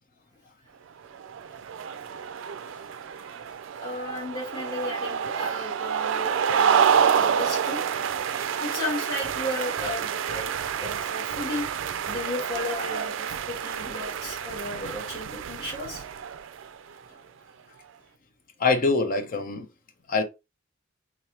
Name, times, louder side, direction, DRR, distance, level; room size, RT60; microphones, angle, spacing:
sound 1, 1.1-16.8, right 7 dB, 65° right, 0.4 m, -28 dB
voice 1, 3.8-7.9 8.6-10.5 10.8-11.7 12.0-16.0, left 1 dB, 25° left, 1.3 m, -34 dB
voice 2, 18.6-19.7 20.1-20.2, left 3 dB, 45° left, 0.6 m, -24 dB
3.7 x 3.2 x 2.8 m
head